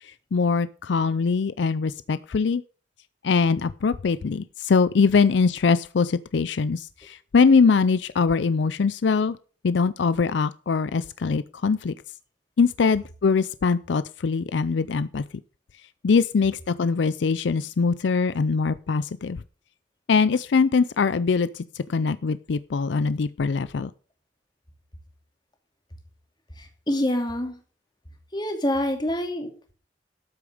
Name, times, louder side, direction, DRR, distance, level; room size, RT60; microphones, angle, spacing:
voice 1, 0.0-2.6 3.2-9.4 9.6-11.9 12.6-15.2 16.0-19.4 20.1-23.9, left 5 dB, 70° left, 15 dB, 0.4 m, -22 dB
voice 2, 26.6-27.6 28.3-29.7, left 1 dB, 25° left, 5 dB, 2.5 m, -27 dB
13.0 x 8.5 x 4.9 m, 0.39 s
head